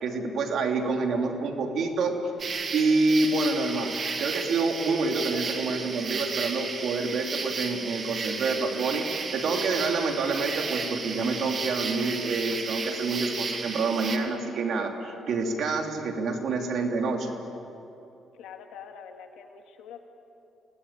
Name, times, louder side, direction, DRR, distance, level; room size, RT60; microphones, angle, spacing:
voice 1, 0.0-2.1 2.7-3.9 4.2-17.3, right 3 dB, 70° right, 3 dB, 3.3 m, -27 dB
sound 1, 2.4-14.2, right 4 dB, 50° right, 2.6 m, -33 dB
voice 2, 18.4-20.0, left 7 dB, 90° left, 4 dB, 2.2 m, -45 dB
27.5 x 19.5 x 8.8 m, 2.9 s
cardioid pair, 90°, 0 cm